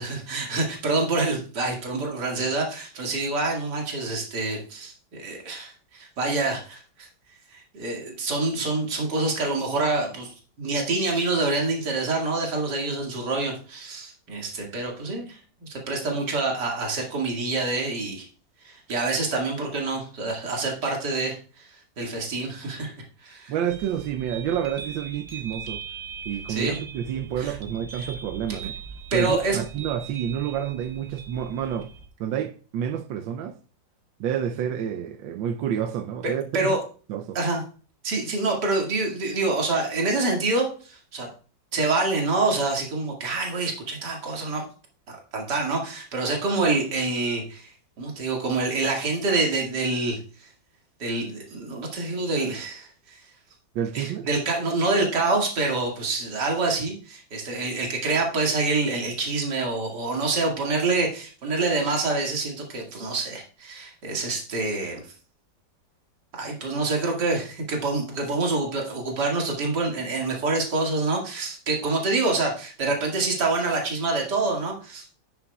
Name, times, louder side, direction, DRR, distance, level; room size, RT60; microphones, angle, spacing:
voice 1, 0.0-7.1 7.5-10.3 10.6-18.3 18.6-22.9 23.2-23.5 26.5-26.8 27.4-27.5 29.1-29.6 36.2-36.8 37.3-37.6 38.0-41.3 41.7-44.7 45.3-50.5 51.0-53.2 53.9-65.0 66.3-75.1, right 3 dB, 65° right, 2.7 m, -26 dB
voice 2, 23.5-25.8 26.3-28.7 29.1-31.9 32.2-33.6 34.2-36.8 37.1-37.4 53.7-54.3, right 9 dB, 85° right, 1.4 m, -29 dB
sound 1, 23.7-32.1, right 6 dB, 40° right, 1.3 m, -40 dB
9.9 x 8.8 x 2.3 m
omnidirectional pair, 2.0 m